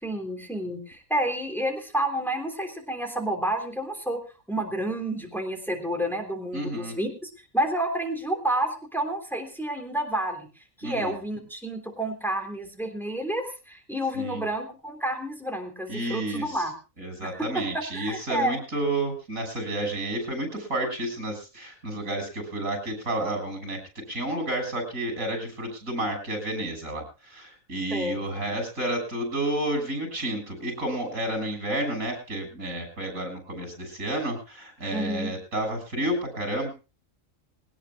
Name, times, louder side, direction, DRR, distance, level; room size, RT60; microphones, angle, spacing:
voice 1, 0.0-4.2 4.5-10.5 10.8-16.7 17.2-18.6 27.9-28.2 34.9-35.3, right 1 dB, ahead, 3 dB, 3.2 m, -30 dB
voice 2, 6.5-7.0 10.8-11.2 14.2-14.4 15.9-16.6 17.0-36.7, right 1 dB, 90° right, 4 dB, 7.2 m, -31 dB
21.0 x 18.5 x 2.3 m, 0.31 s
omnidirectional pair, 1.4 m